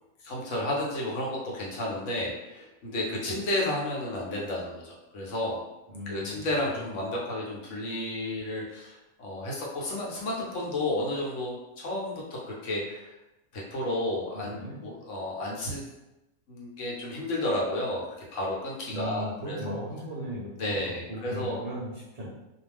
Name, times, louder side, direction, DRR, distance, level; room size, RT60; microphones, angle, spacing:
voice 1, 0.2-5.6 6.1-13.1 13.5-15.8 16.5-18.0 18.3-19.7 20.6-21.7, left 1 dB, 65° left, -4 dB, 1.0 m, -32 dB
voice 2, 5.9-6.4 6.8-6.9 14.3-14.8 18.9-22.4, equal, 55° right, -8 dB, 0.4 m, -37 dB
2.5 x 2.1 x 3.3 m, 0.97 s
omnidirectional pair, 1.5 m